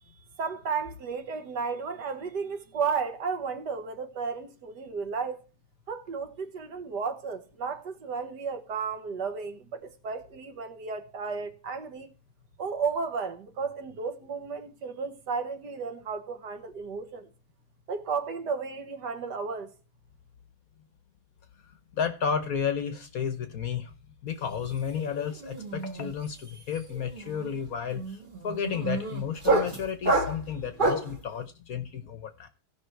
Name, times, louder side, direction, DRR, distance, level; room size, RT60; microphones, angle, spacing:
voice 1, 0.4-5.4 5.9-12.1 12.6-17.3 17.9-19.7, right 5 dB, 65° right, 1.7 m, -33 dB
voice 2, 21.9-23.9 24.2-32.5, left 7 dB, 55° left, 1.1 m, -32 dB
sound 1, 24.4-24.7 25.0-31.2, right 2 dB, 30° right, 1.5 m, -29 dB
16.5 x 5.6 x 4.5 m
omnidirectional pair, 2.1 m